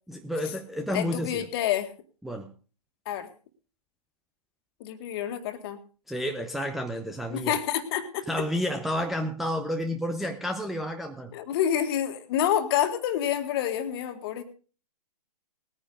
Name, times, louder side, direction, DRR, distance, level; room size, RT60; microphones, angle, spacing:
voice 1, 0.1-1.4 2.2-2.5 6.1-7.6 8.3-11.3, equal, ahead, 3 dB, 0.7 m, -30 dB
voice 2, 0.9-1.9 3.1-3.3 4.8-5.8 7.3-8.3 11.3-14.4, left 10 dB, 35° left, 9 dB, 1.9 m, -28 dB
19.5 x 9.8 x 3.8 m, 0.37 s
figure-of-eight pair, 125°, 20 cm